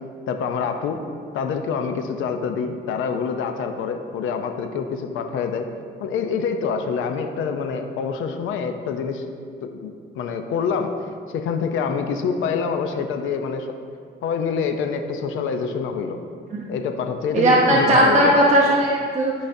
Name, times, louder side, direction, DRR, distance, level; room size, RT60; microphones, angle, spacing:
voice 1, 0.3-1.0 1.3-5.7 6.0-9.2 9.6-10.9 11.3-13.7 14.2-16.2 16.7-18.3, left 6 dB, 85° left, 6 dB, 0.6 m, -26 dB
voice 2, 17.3-19.3, right 1 dB, 35° right, -4 dB, 0.9 m, -17 dB
12.0 x 5.0 x 2.7 m, 2.2 s
cardioid pair, 90°, 20 cm